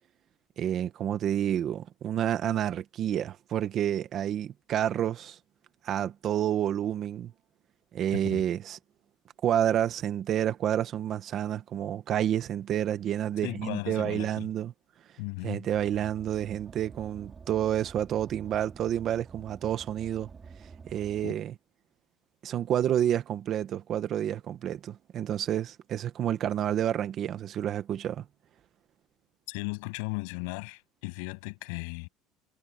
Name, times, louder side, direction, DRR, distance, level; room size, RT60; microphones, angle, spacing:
voice 1, 0.6-5.4 5.8-7.3 7.9-8.8 9.4-14.7 15.4-20.3 20.9-21.5 22.4-28.2, right 10 dB, 40° right, 1.3 m, -29 dB
voice 2, 13.4-14.5 15.2-15.6 21.2-21.3 29.5-32.1, left 32 dB, 85° left, 8.0 m, -36 dB
Car, 15.7-21.2, right 5 dB, 20° right, 3.3 m, -48 dB
cardioid pair, 150°, 0 cm